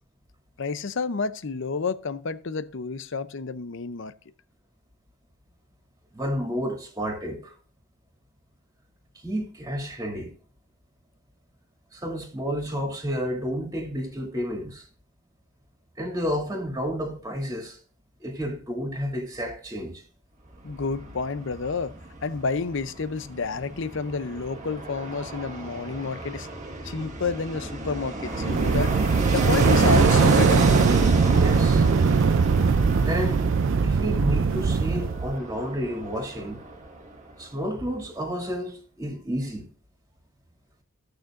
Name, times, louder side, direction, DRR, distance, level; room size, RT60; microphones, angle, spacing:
voice 1, 0.6-4.1 20.6-21.9 22.2-26.5 26.8-28.9 29.3-30.7, left 4 dB, 60° left, 0.6 m, -30 dB
voice 2, 6.1-7.5 9.1-10.3 11.9-14.9 16.0-17.8 18.2-20.0 31.2-31.9 33.0-33.5 33.8-36.6 37.4-39.7, equal, 15° right, 2.6 m, -31 dB
Fixed-wing aircraft airplane, 20.5-37.4 37.7-37.8, right 2 dB, 35° right, 1.7 m, -32 dB
sound 1, 28.3-35.3, right 5 dB, 65° right, 0.4 m, -21 dB
16.5 x 6.4 x 2.5 m
head